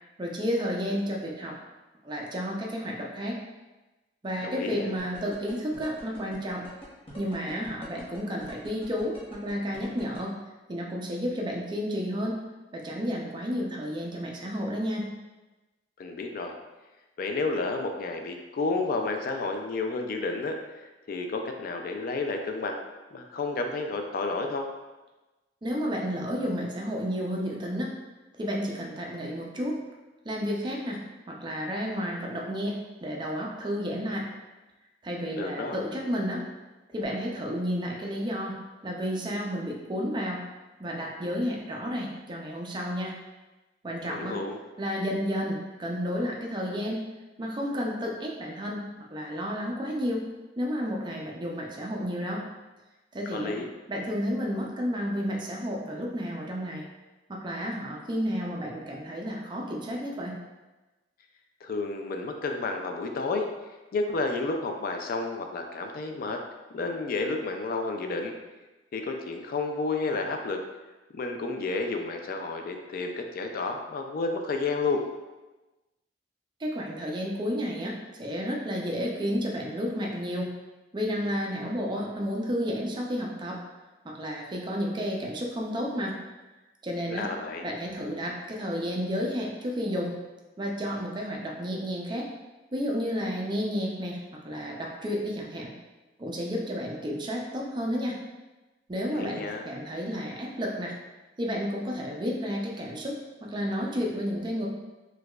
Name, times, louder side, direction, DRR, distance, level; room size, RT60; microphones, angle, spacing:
voice 1, 0.2-1.6 2.0-3.4 4.2-6.6 7.2-10.4 10.7-12.4 12.7-15.1 25.6-27.9 28.4-29.8 30.2-31.0 31.3-34.3 35.0-36.4 36.9-38.5 38.8-40.4 40.8-43.2 43.8-44.4 44.8-47.0 47.4-50.2 50.6-52.4 53.1-53.6 53.9-56.9 57.3-60.4 76.6-80.5 80.9-83.6 84.0-86.2 86.8-87.3 87.6-90.2 90.6-92.3 92.7-95.7 96.2-98.2 98.9-101.0 101.4-104.7, equal, 25° right, -1 dB, 0.4 m, -31 dB
voice 2, 4.4-4.9 16.0-16.5 17.2-22.8 23.1-24.7 35.3-35.8 44.1-44.6 53.3-53.7 61.6-63.5 63.9-66.4 66.7-68.3 68.9-70.6 71.1-75.0 87.1-87.7 99.2-99.7, left 3 dB, 55° left, 4 dB, 0.3 m, -31 dB
sound 1, 5.0-10.2, left 1 dB, 30° left, 0.9 m, -45 dB
4.6 x 2.3 x 2.3 m, 1.1 s
head